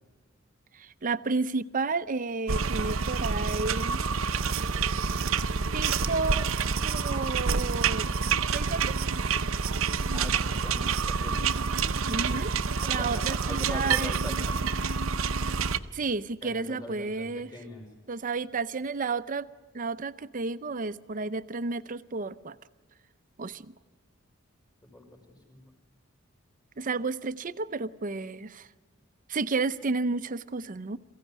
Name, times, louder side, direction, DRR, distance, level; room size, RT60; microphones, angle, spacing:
voice 1, 0.7-4.1 5.7-6.5 6.8-8.1 8.5-9.0 12.1-12.5 12.9-14.1 15.9-17.5 18.1-19.5 19.7-22.6 23.4-23.7 26.8-28.7 29.3-31.0, right 3 dB, 40° right, 0.6 m, -32 dB
sound 1, 2.5-15.8, right 5 dB, 75° right, 0.7 m, -28 dB
voice 2, 10.1-11.5 12.8-14.6 16.4-17.8 24.8-25.6, left 2 dB, 20° left, 5.1 m, -42 dB
23.0 x 16.0 x 9.4 m
head